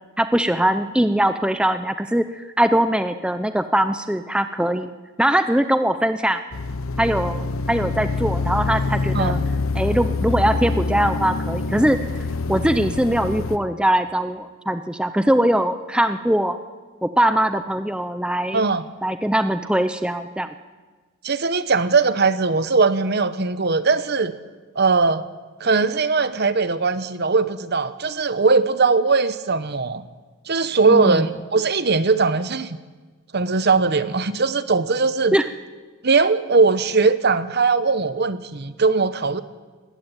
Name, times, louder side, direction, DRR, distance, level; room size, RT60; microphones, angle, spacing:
voice 1, 0.2-4.9 5.2-6.4 7.0-9.4 9.7-12.0 12.5-16.6 17.0-18.6 19.0-20.5 30.9-31.3 35.3-35.5, right 1 dB, 5° right, 9 dB, 0.6 m, -21 dB
sound 1, 6.5-13.6, left 3 dB, 80° left, 0.8 m, -25 dB
voice 2, 18.5-18.8 21.2-24.4 24.8-25.2 25.6-30.0 30.5-32.8 33.3-35.4 36.0-39.4, right 4 dB, 50° right, 13 dB, 0.9 m, -20 dB
19.5 x 15.0 x 9.1 m, 1.3 s
head